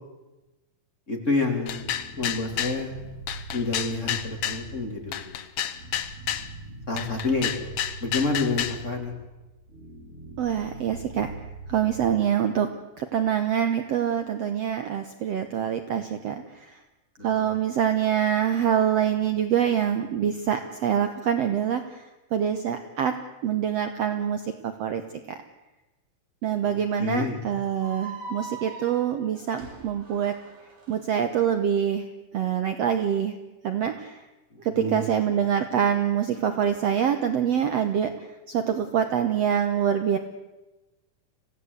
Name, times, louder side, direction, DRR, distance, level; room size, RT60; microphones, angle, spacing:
voice 1, 1.1-1.9 2.2-3.0 3.5-5.5 6.9-7.7 8.0-9.1 17.4-17.5 26.6-26.7 27.0-27.4 34.7-35.1, left 3 dB, 20° left, 2 dB, 3.0 m, -28 dB
sound 1, 1.7-2.8 3.3-4.6 5.1-6.5 7.0-8.8, left 10 dB, 65° left, 1.5 m, -30 dB
sound 2, 1.7-12.0, right 2 dB, 40° right, 6.7 m, -42 dB
voice 2, 10.4-11.3 11.7-12.7 13.0-16.8 17.2-22.0 22.3-23.2 23.4-25.0 26.4-30.4 30.9-32.0 32.3-33.4 33.6-34.2 34.6-38.1 38.5-40.2, right 8 dB, 65° right, 8 dB, 1.8 m, -25 dB
sound 3, 27.8-31.0, right 4 dB, 85° right, 5.6 m, -41 dB
26.5 x 16.5 x 8.1 m, 1.1 s
omnidirectional pair, 3.9 m